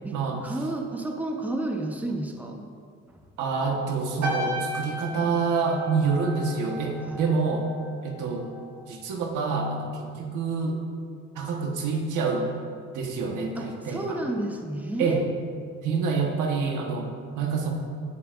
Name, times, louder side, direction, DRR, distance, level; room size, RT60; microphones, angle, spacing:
voice 1, 0.0-2.7 3.1-3.2 5.7-5.9 7.0-7.3 13.5-15.3, right 1 dB, 5° right, 2 dB, 1.0 m, -32 dB
voice 2, 3.4-7.6 8.0-8.5 8.9-10.8 11.3-12.5 12.9-14.2 15.0-15.2 15.8-17.7, right 4 dB, 90° right, 1 dB, 1.4 m, -27 dB
sound 1, 4.2-8.8 9.1-9.5, equal, 70° right, 1.9 m, -35 dB
16.0 x 6.7 x 2.6 m, 2.2 s
cardioid pair, 90°, 30 cm